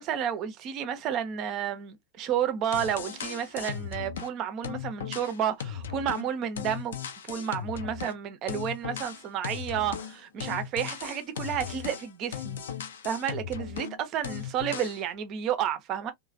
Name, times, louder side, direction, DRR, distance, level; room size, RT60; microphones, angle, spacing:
voice 1, 0.0-7.0 7.3-12.6 13.0-16.1, right 9 dB, 35° right, 0.7 m, -31 dB
sound 1, 2.4-2.5 2.7-4.3 4.6-8.2 8.5-14.0 14.2-15.0, left 8 dB, 65° left, 0.5 m, -37 dB
3.1 x 2.2 x 2.4 m
figure-of-eight pair, 90°, 0 cm